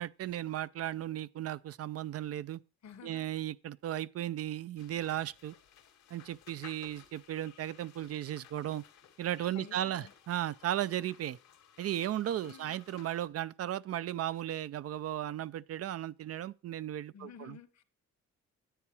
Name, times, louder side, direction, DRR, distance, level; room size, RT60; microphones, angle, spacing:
voice 1, 0.0-2.6 3.0-5.5 6.1-8.8 9.2-11.4 11.8-17.6, right 12 dB, 55° right, 0.4 m, -36 dB
voice 2, 2.8-3.3 9.5-10.1 12.4-12.8 17.1-17.8, left 7 dB, 65° left, 1.4 m, -51 dB
sound 1, 4.8-13.3, left 9 dB, 90° left, 2.4 m, -58 dB
10.0 x 8.5 x 4.7 m
cardioid pair, 90°, 30 cm